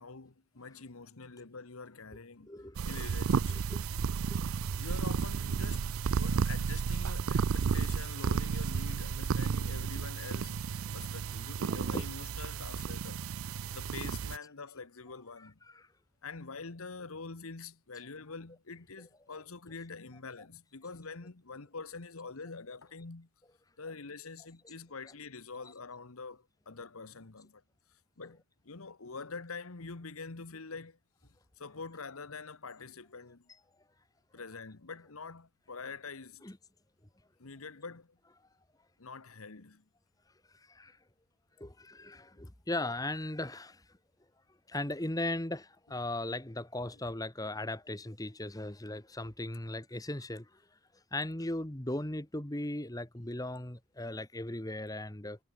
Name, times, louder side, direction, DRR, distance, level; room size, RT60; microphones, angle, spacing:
voice 1, 0.0-2.5 2.8-3.6 4.8-10.6 10.9-13.3 13.7-15.6 16.2-23.3 23.8-27.6 27.9-33.5 34.3-36.5 37.4-38.2 39.0-39.8, left 4 dB, 80° left, 1.3 m, -46 dB
voice 2, 2.5-2.8 3.7-3.8 4.3-4.4 11.9-12.1 15.7-15.9 36.4-36.6 40.7-41.0 41.6-43.8 44.7-50.5 51.1-55.4, left 1 dB, 15° left, 1.4 m, -37 dB
sound 1, 2.8-14.4, right 6 dB, 75° right, 0.4 m, -32 dB
head